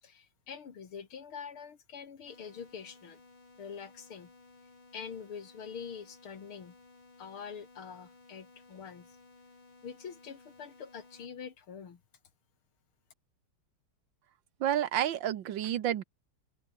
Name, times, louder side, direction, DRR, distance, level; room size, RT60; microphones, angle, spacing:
voice 1, 0.0-3.2 3.6-4.3 4.9-6.8 7.2-9.2 9.8-12.0, left 7 dB, 90° left, 3.1 m, -45 dB
sound 1, 2.3-11.3, left 3 dB, 70° left, 6.8 m, -58 dB
voice 2, 14.6-16.0, right 11 dB, 70° right, 1.6 m, -30 dB
open air
omnidirectional pair, 2.3 m